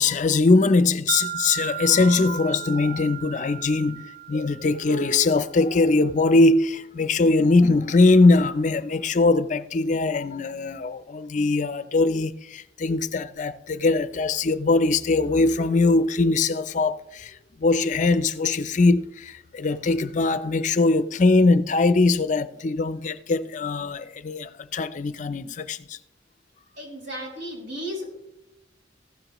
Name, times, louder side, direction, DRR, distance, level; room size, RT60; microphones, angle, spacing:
voice 1, 0.0-26.0, left 3 dB, 40° left, 0.4 m, -21 dB
Wind chime, 1.1-5.4, right 11 dB, 45° right, 1.1 m, -35 dB
voice 2, 26.8-28.1, equal, 75° right, 5.5 m, -34 dB
15.0 x 13.0 x 3.0 m
head